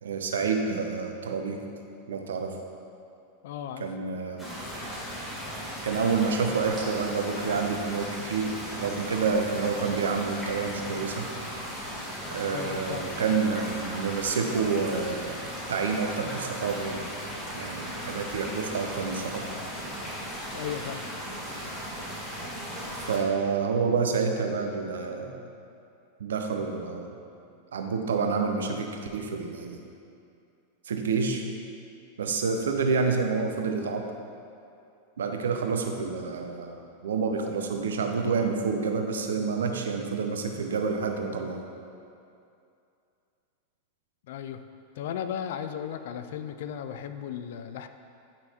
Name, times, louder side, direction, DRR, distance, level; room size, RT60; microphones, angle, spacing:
voice 1, 0.0-1.6 2.1-2.6 3.8-4.5 5.8-11.3 12.3-17.0 17.5-19.5 23.1-25.4 26.2-27.1 27.7-29.8 30.8-31.4 32.2-34.1 35.2-41.6, right 5 dB, 65° right, 4 dB, 0.6 m, -28 dB
voice 2, 3.4-3.9 12.5-13.1 20.5-21.0 44.3-44.6 45.0-47.9, left 9 dB, 55° left, 9 dB, 0.3 m, -35 dB
sound 1, 4.4-23.2, equal, ahead, 1.6 m, -37 dB
8.8 x 5.7 x 2.8 m, 2.5 s
figure-of-eight pair, 90°, 0 cm